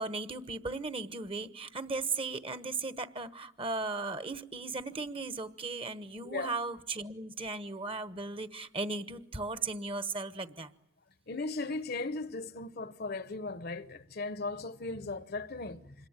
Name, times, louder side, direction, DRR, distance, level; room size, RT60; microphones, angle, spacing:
voice 1, 0.0-10.7, right 3 dB, 30° right, 1.1 m, -36 dB
voice 2, 11.3-15.9, left 3 dB, 55° left, 1.0 m, -37 dB
26.5 x 21.5 x 8.8 m
head